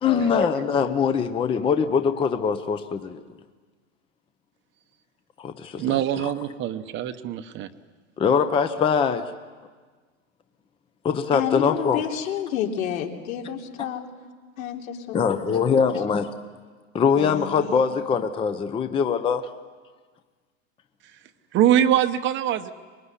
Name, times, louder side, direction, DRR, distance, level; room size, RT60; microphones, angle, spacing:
voice 1, 0.0-3.2 5.4-6.0 6.2-6.3 8.2-9.3 11.0-12.0 15.1-16.4 16.9-19.4, left 6 dB, 15° left, 8 dB, 0.7 m, -22 dB
voice 2, 5.8-7.7 21.5-22.7, right 11 dB, 30° right, 10 dB, 0.9 m, -23 dB
voice 3, 11.3-14.1 14.6-15.2 15.5-15.7 17.2-17.8, left 9 dB, 75° left, 1 dB, 3.5 m, -30 dB
25.0 x 21.5 x 9.8 m, 1.5 s
supercardioid pair, 145°, 41 cm